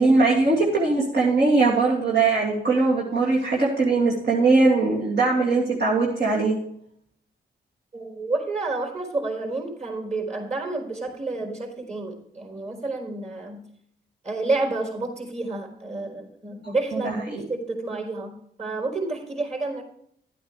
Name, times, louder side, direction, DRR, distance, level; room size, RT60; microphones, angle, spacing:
voice 1, 0.0-6.6 16.6-17.5, right 3 dB, 65° right, -6 dB, 2.8 m, -21 dB
voice 2, 7.9-13.6 14.2-19.8, right 3 dB, 40° right, 3 dB, 4.2 m, -30 dB
12.0 x 8.8 x 3.4 m, 0.68 s
cardioid pair, 70°, 19 cm